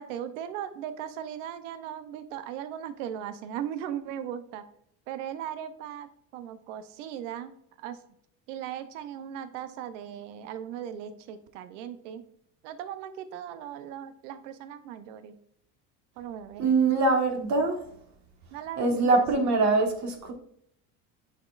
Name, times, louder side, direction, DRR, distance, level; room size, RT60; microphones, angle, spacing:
voice 1, 0.0-4.6 5.1-8.0 8.5-12.2 12.6-15.4 16.2-16.6 18.5-19.5, right 9 dB, 90° right, 11 dB, 0.6 m, -38 dB
voice 2, 16.6-17.9 18.8-20.3, right 3 dB, 50° right, 3 dB, 1.4 m, -23 dB
9.1 x 4.3 x 2.4 m, 0.70 s
supercardioid pair, 95°, 36 cm